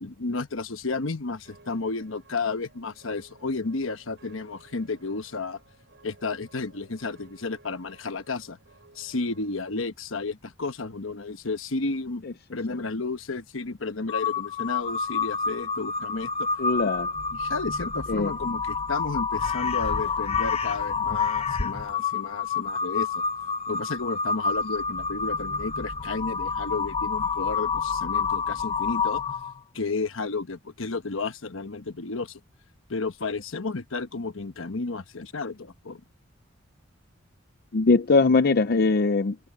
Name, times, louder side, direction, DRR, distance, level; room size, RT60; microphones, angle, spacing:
voice 1, 0.0-5.6 6.0-8.6 8.9-12.2 12.5-16.5 17.3-23.2 23.7-29.2 29.7-32.4 32.9-36.0, left 3 dB, 75° left, 1.2 m, -32 dB
sound 1, 1.4-9.6, right 3 dB, 65° right, 7.3 m, -57 dB
Crow, 14.1-29.6, left 5 dB, 30° left, 0.9 m, -28 dB
voice 2, 16.6-17.1 18.1-18.3 37.7-39.5, left 3 dB, 50° left, 0.6 m, -21 dB
head